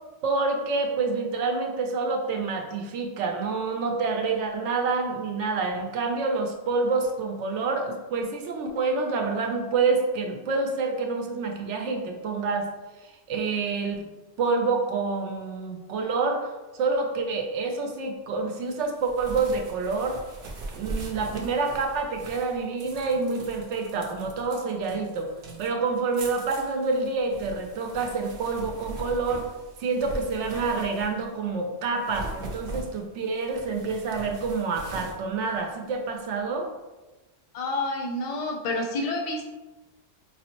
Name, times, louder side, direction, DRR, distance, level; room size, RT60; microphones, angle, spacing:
voice 1, 0.2-12.7 13.3-14.0 14.4-16.5 16.8-20.2 20.7-25.3 25.6-29.5 29.8-36.7, right 4 dB, 90° right, 3 dB, 0.9 m, -27 dB
sound 1, 18.7-31.4 31.9-36.2, right 2 dB, 60° right, 0.8 m, -41 dB
voice 2, 37.5-39.5, left 2 dB, 45° left, 1 dB, 0.5 m, -29 dB
4.7 x 2.0 x 2.9 m, 1.1 s
omnidirectional pair, 1.2 m